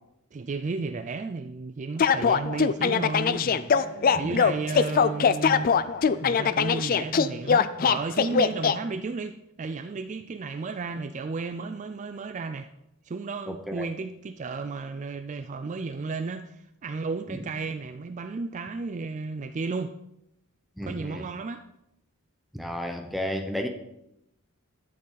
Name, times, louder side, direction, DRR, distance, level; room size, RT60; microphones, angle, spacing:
voice 1, 0.3-3.7 4.1-5.7 6.2-12.7 13.0-19.9 20.8-21.6, right 4 dB, 35° right, 0.4 m, -33 dB
sound 1, 2.0-8.7, left 6 dB, 40° left, 0.4 m, -22 dB
sound 2, 2.8-9.0, right 1 dB, 55° right, 1.1 m, -45 dB
voice 2, 13.5-13.9 17.3-17.4 20.8-21.3 22.5-23.7, equal, ahead, 0.9 m, -33 dB
12.0 x 7.7 x 4.0 m
head